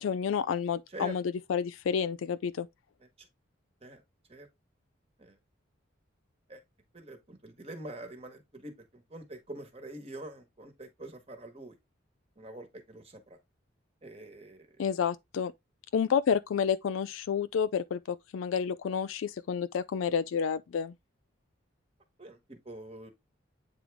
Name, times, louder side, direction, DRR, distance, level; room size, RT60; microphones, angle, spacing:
voice 1, 0.0-1.2 1.5-2.7 14.8-15.5 15.9-20.9, left 7 dB, 80° left, 0.3 m, -30 dB
voice 2, 6.9-11.8 12.4-13.4 14.0-14.8 22.2-23.1, right 1 dB, 30° right, 1.3 m, -45 dB
8.6 x 3.6 x 3.4 m
head